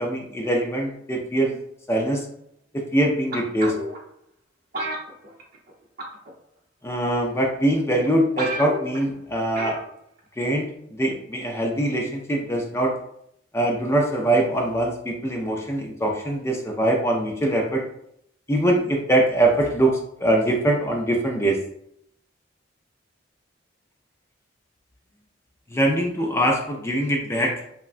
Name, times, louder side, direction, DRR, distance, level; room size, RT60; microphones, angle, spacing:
voice 1, 0.0-1.6 1.9-2.2 2.7-3.7 6.8-9.8 10.4-10.7 11.0-12.9 13.5-17.8 18.5-21.6 25.7-27.5, right 1 dB, 15° left, 0 dB, 0.3 m, -23 dB
sound 1, 3.3-4.0 4.7-5.7 6.0-6.3 7.1-7.2 7.8-7.9 8.1-8.2 8.4-9.0 9.6-9.9 10.2-10.3, right 1 dB, 50° right, 0.7 m, -31 dB
3.4 x 2.1 x 2.4 m, 0.73 s
head